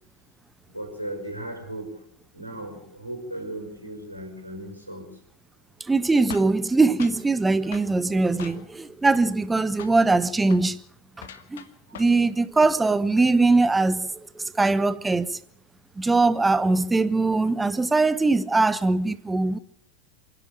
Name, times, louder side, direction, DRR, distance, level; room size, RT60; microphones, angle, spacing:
voice 1, 0.7-2.0 2.3-5.1 8.4-8.6, right 1 dB, 90° right, 5.7 m, -36 dB
voice 2, 5.9-10.8 11.2-11.6 11.9-14.1 14.3-15.4 16.0-19.6, right 3 dB, 10° right, 0.9 m, -21 dB
sound 1, 6.3-7.3 7.7-7.9 8.4-8.9 9.1-9.5 9.8-10.0 10.4-10.7 11.2-12.3 12.5-12.8, left 8 dB, 60° left, 1.6 m, -42 dB
27.5 x 11.0 x 8.8 m
figure-of-eight pair, 90°, 0 cm